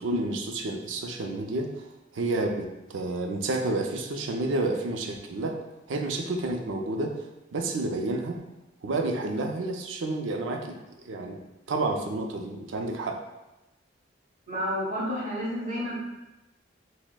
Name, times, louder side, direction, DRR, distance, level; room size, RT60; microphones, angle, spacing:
voice 1, 0.0-1.9 2.1-5.6 5.9-7.2 7.5-8.4 8.8-11.4 11.7-13.2, right 2 dB, 85° right, 3 dB, 0.4 m, -30 dB
voice 2, 14.5-15.9, equal, 40° right, -6 dB, 1.2 m, -30 dB
5.9 x 2.1 x 2.2 m, 1.0 s
head